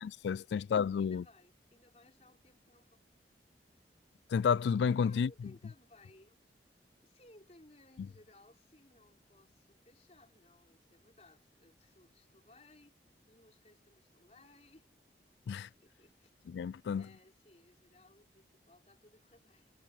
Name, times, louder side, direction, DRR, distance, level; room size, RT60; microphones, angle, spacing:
voice 1, 0.0-1.2 4.3-5.5 8.0-8.1 15.5-15.7 16.5-17.1, left 6 dB, 80° left, 0.3 m, -31 dB
voice 2, 1.0-3.0 5.0-6.4 7.0-12.9 13.3-14.9 15.8-16.3 17.0-19.8, left 2 dB, 40° left, 4.3 m, -62 dB
head